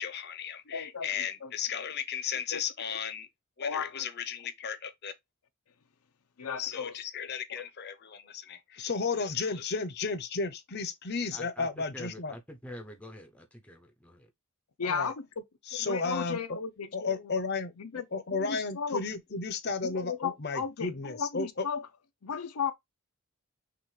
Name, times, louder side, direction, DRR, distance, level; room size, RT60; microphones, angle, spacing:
voice 1, 0.0-3.3 3.6-5.1 6.6-12.3 14.9-15.1 15.7-16.6 16.9-21.7, left 5 dB, 45° left, 0.8 m, -34 dB
voice 2, 0.7-1.5 2.5-2.6 3.6-4.1 6.4-7.0 7.5-7.6 14.8-15.4 15.7-17.3 17.8-18.0 18.3-19.0 19.8-21.9 22.2-22.7, left 6 dB, 85° left, 0.7 m, -35 dB
voice 3, 11.3-11.7 11.9-14.3, left 1 dB, 5° left, 0.6 m, -46 dB
6.0 x 2.5 x 3.2 m
head